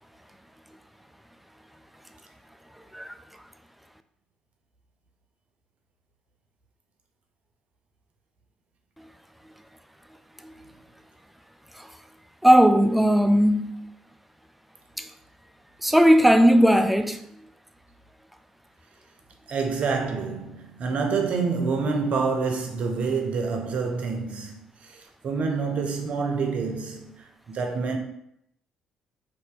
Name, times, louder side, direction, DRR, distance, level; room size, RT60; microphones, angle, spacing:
voice 1, 12.4-13.7 15.0-15.1 15.8-17.2, equal, 5° right, 0.3 m, -17 dB
voice 2, 19.5-28.0, right 4 dB, 55° right, 0.6 m, -27 dB
2.7 x 2.6 x 3.7 m
hypercardioid pair, 45°, 3 cm